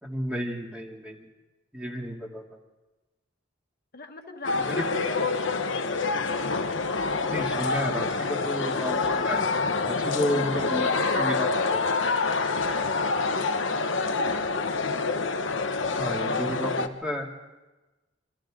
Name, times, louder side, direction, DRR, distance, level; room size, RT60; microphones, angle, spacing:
voice 1, 0.0-1.2 1.7-2.4 4.6-5.0 7.2-9.5 9.8-11.8 16.0-17.3, equal, 5° right, -1 dB, 2.7 m, -32 dB
voice 2, 3.9-6.2 10.5-11.2 13.7-15.3, left 2 dB, 50° left, 3 dB, 1.6 m, -42 dB
sound 1, 4.4-16.9, left 4 dB, 70° left, 1.2 m, -27 dB
27.5 x 25.0 x 3.8 m, 1.1 s
head